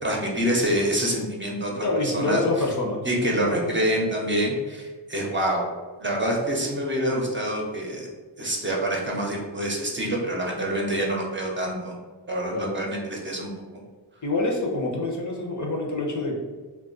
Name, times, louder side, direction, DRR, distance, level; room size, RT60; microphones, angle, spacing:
voice 1, 0.0-2.4 3.0-5.7 6.0-8.1 8.4-12.0 12.3-13.8, right 1 dB, 25° right, -2 dB, 0.7 m, -26 dB
voice 2, 1.8-3.1 12.5-12.8 14.2-16.4, left 2 dB, 45° left, 0 dB, 0.7 m, -26 dB
2.3 x 2.2 x 3.8 m, 1.4 s
cardioid pair, 55°, 44 cm